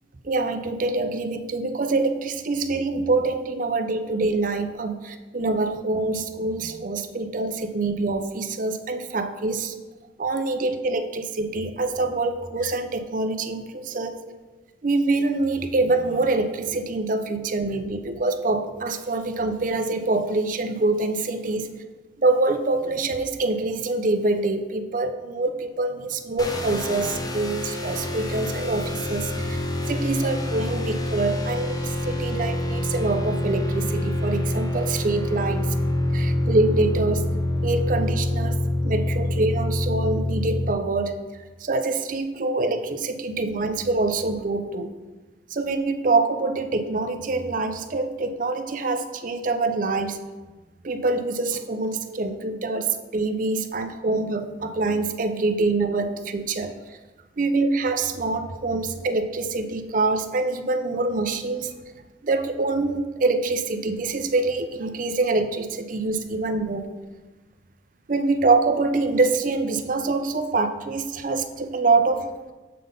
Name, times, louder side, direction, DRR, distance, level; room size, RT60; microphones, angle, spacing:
voice 1, 0.2-9.7 10.2-14.1 14.8-21.7 22.2-29.6 29.9-35.7 36.1-37.2 37.6-41.1 41.6-44.9 45.5-50.2 50.8-56.7 57.4-61.7 62.2-66.9 68.1-72.3, right 3 dB, 45° right, 8 dB, 0.5 m, -25 dB
sound 1, 26.4-40.7, left 1 dB, 20° left, 0.5 m, -26 dB
7.5 x 3.9 x 5.2 m, 1.2 s
head